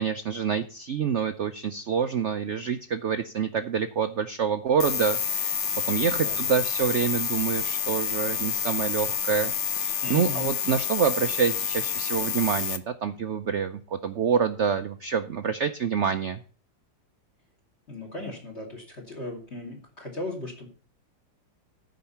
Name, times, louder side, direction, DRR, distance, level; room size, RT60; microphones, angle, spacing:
voice 1, 0.0-5.6 5.8-16.4, right 7 dB, 85° right, 9 dB, 0.6 m, -27 dB
sound 1, 4.8-12.8, left 7 dB, 50° left, 0.9 m, -28 dB
voice 2, 10.0-10.5 17.9-20.7, left 2 dB, 35° left, 2 dB, 2.9 m, -36 dB
14.5 x 5.3 x 5.6 m, 0.40 s
omnidirectional pair, 2.1 m